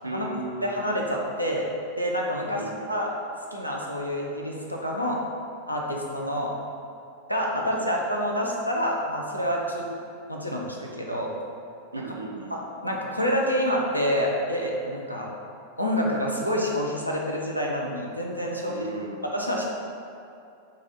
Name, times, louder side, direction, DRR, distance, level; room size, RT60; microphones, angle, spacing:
voice 1, 0.0-0.7 2.4-2.9 7.5-7.9 11.9-12.6 18.6-19.2, right 2 dB, 80° right, 2 dB, 0.4 m, -36 dB
voice 2, 0.6-1.7 2.0-2.6 2.9-3.1 3.5-5.2 5.7-6.5 7.3-9.9 10.3-11.3 12.5-15.3 15.8-18.9 19.3-19.7, equal, 90° left, -2 dB, 0.5 m, -27 dB
4.1 x 2.4 x 3.9 m, 2.5 s
figure-of-eight pair, 90°, 0 cm